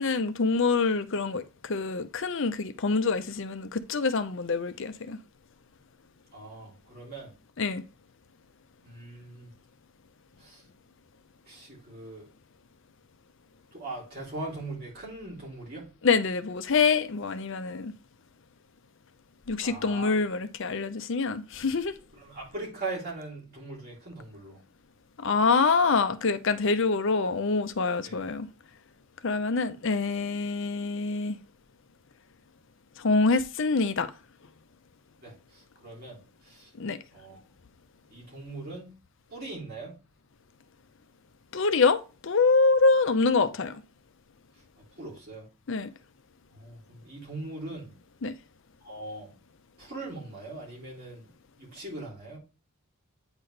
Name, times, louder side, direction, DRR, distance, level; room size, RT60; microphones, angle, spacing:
voice 1, 0.0-5.2 7.6-7.8 16.0-17.9 19.5-21.9 25.2-28.5 29.2-31.4 33.0-34.1 36.8-37.0 41.5-43.8 45.7-45.9 48.2-48.3, left 4 dB, 55° left, 0.6 m, -25 dB
voice 2, 6.3-7.3 8.8-9.5 10.4-10.6 11.5-12.3 13.7-15.9 19.6-20.1 22.1-24.6 28.0-28.2 35.2-36.2 36.4-36.7 37.1-37.4 38.1-38.9 39.3-40.0 45.0-45.5 46.5-47.9 48.8-49.3 49.8-51.3 51.6-52.4, right 2 dB, 45° right, 3.3 m, -40 dB
8.9 x 4.1 x 3.3 m
head